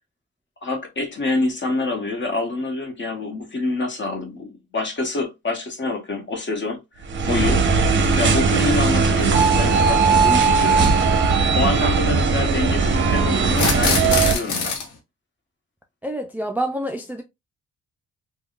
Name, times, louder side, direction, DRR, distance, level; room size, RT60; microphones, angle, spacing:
voice 1, 0.6-6.8 7.2-7.6 8.2-11.0 11.5-14.7, left 3 dB, 40° left, 1.1 m, -26 dB
sound 1, 7.1-14.4, right 4 dB, 40° right, 0.7 m, -18 dB
sound 2, 9.2-9.3 10.7-10.9 13.5-14.9, left 4 dB, 75° left, 1.0 m, -23 dB
voice 2, 16.0-17.2, right 1 dB, 5° right, 0.3 m, -27 dB
3.4 x 2.3 x 2.3 m
cardioid pair, 90°, 30 cm